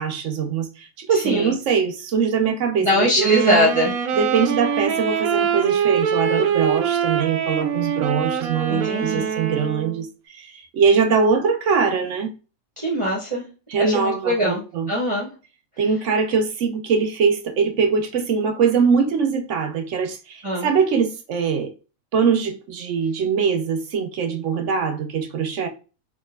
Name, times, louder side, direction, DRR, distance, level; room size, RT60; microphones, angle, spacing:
voice 1, 0.0-3.6 4.2-12.3 13.7-14.9 15.8-21.7 22.1-25.7, right 5 dB, 65° right, 1.0 m, -22 dB
voice 2, 1.1-1.5 2.8-3.9 8.7-9.3 12.8-13.4 13.8-14.6 14.9-15.3 20.4-20.7, equal, 25° right, 0.9 m, -21 dB
Wind instrument woodwind instrument, 3.2-10.0, right 8 dB, 85° right, 1.1 m, -23 dB
4.7 x 2.7 x 2.3 m
omnidirectional pair, 1.5 m